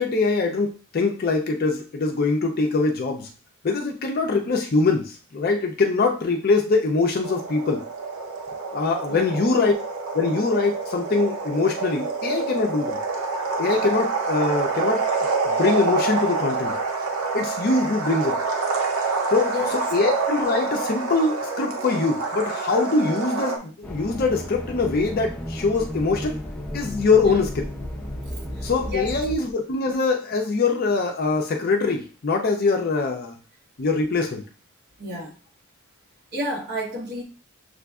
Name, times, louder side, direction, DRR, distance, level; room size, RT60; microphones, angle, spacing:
voice 1, 0.0-3.3 3.6-7.8 8.7-9.7 10.1-13.0 13.6-15.0 15.5-16.7 17.3-18.4 19.3-26.4 26.7-27.6 28.6-33.3 33.8-34.4, left 3 dB, 45° left, 0.5 m, -23 dB
sound 1, 7.2-23.6, right 4 dB, 85° right, 0.7 m, -27 dB
sound 2, 23.8-29.3, equal, 5° left, 0.6 m, -33 dB
voice 2, 28.6-29.1 35.0-35.3 36.3-37.2, left 1 dB, 50° right, 1.0 m, -30 dB
6.6 x 2.5 x 2.3 m
head